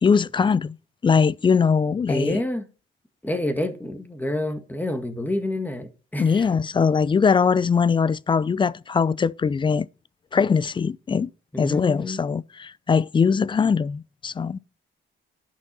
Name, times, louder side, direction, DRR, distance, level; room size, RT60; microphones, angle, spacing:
voice 1, 0.0-0.8 1.0-2.4 6.2-9.9 10.3-11.3 11.6-14.6, left 5 dB, 25° left, 0.4 m, -21 dB
voice 2, 2.1-2.7 3.2-6.5 11.5-12.2, left 1 dB, 10° left, 1.7 m, -28 dB
10.5 x 5.8 x 5.4 m
cardioid pair, 90°, 20 cm